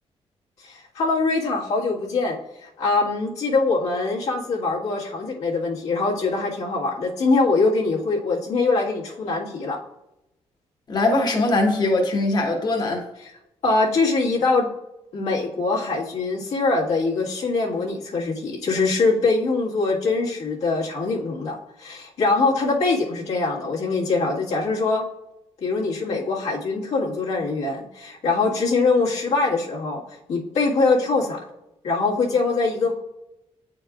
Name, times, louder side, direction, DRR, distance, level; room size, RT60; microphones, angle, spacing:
voice 1, 0.6-9.8 13.6-14.7 15.1-25.0 25.6-30.0 30.3-31.4 31.8-32.9, left 3 dB, 80° left, -4 dB, 1.6 m, -23 dB
voice 2, 10.9-13.0, left 2 dB, 40° left, 2 dB, 1.2 m, -21 dB
8.9 x 4.6 x 2.4 m, 0.90 s
cardioid pair, 115°, 11 cm